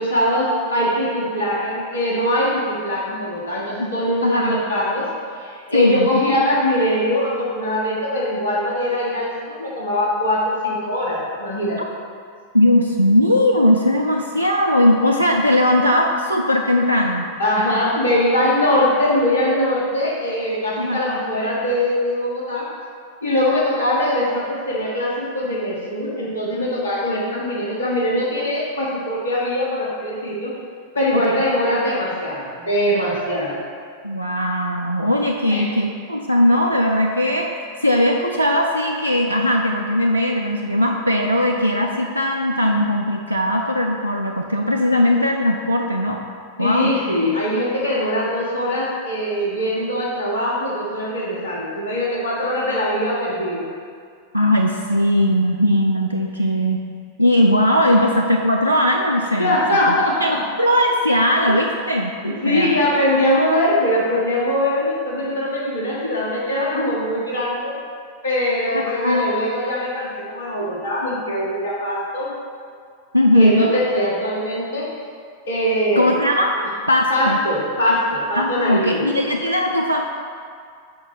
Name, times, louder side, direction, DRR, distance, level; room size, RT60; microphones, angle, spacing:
voice 1, 0.0-5.1 5.4-11.8 17.4-22.7 23.2-30.5 30.9-33.6 35.5-35.7 46.6-53.7 57.8-57.9 59.4-60.4 62.2-67.7 68.2-72.3 73.3-74.9 75.5-76.1 77.1-79.1, left 1 dB, 65° left, -5 dB, 1.4 m, -22 dB
voice 2, 4.2-4.6 5.7-6.1 12.5-17.3 20.8-21.0 31.1-31.4 34.0-37.5 37.8-46.2 46.6-46.9 54.3-56.8 57.2-59.6 59.9-60.0 60.2-62.8 68.7-69.3 73.1-73.7 76.0-76.5 76.9-77.4 78.4-80.0, left 1 dB, 85° right, 1 dB, 0.4 m, -19 dB
5.0 x 4.3 x 5.8 m, 2.2 s
figure-of-eight pair, 90°, 0 cm